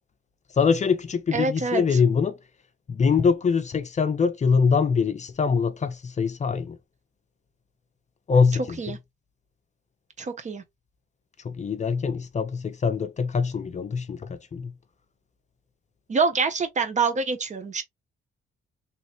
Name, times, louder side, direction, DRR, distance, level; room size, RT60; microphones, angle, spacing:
voice 1, 0.6-2.4 2.9-6.8 8.3-9.0 11.4-14.7, left 5 dB, 35° left, 0.6 m, -23 dB
voice 2, 1.3-1.8 8.8-9.0 10.2-10.6 16.1-17.8, right 4 dB, 35° right, 0.8 m, -25 dB
3.1 x 2.9 x 3.0 m
cardioid pair, 90°, 20 cm